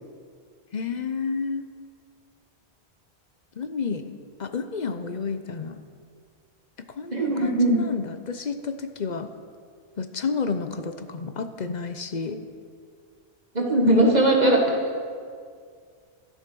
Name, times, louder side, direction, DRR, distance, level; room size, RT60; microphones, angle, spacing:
voice 1, 0.7-1.7 3.6-4.1 4.4-5.8 7.0-9.3 10.0-12.5, left 5 dB, 45° left, 8 dB, 0.8 m, -30 dB
voice 2, 7.1-7.8 13.5-14.8, right 1 dB, 40° right, 0 dB, 1.6 m, -19 dB
12.5 x 10.0 x 6.1 m, 2.1 s
omnidirectional pair, 1.1 m